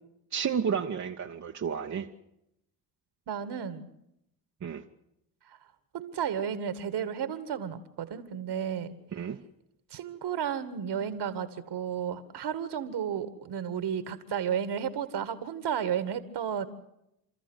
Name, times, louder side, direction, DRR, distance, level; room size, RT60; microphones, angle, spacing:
voice 1, 0.3-2.1 4.6-4.8 9.1-9.4, right 7 dB, 35° right, 3 dB, 1.2 m, -31 dB
voice 2, 3.3-3.9 5.9-9.0 9.9-16.7, right 8 dB, 55° right, 13 dB, 2.0 m, -33 dB
29.0 x 14.0 x 8.1 m, 0.82 s
hypercardioid pair, 55°, 49 cm